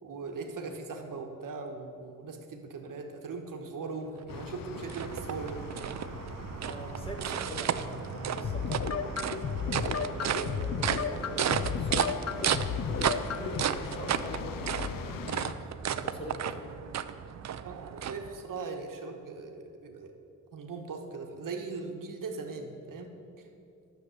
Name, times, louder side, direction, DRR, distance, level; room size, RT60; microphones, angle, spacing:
voice 1, 0.0-5.7 7.2-7.4 17.6-20.1 20.5-23.5, right 4 dB, 80° right, 3 dB, 1.3 m, -40 dB
sound 1, 4.2-18.7, right 9 dB, 55° right, 0.5 m, -34 dB
sound 2, 4.3-15.5, left 8 dB, 90° left, 0.6 m, -44 dB
voice 2, 6.6-16.8, equal, 15° left, 0 dB, 1.9 m, -43 dB
sound 3, 8.4-13.6, left 6 dB, 50° left, 0.6 m, -33 dB
11.0 x 6.8 x 8.2 m, 2.5 s
wide cardioid pair, 125°, 32 cm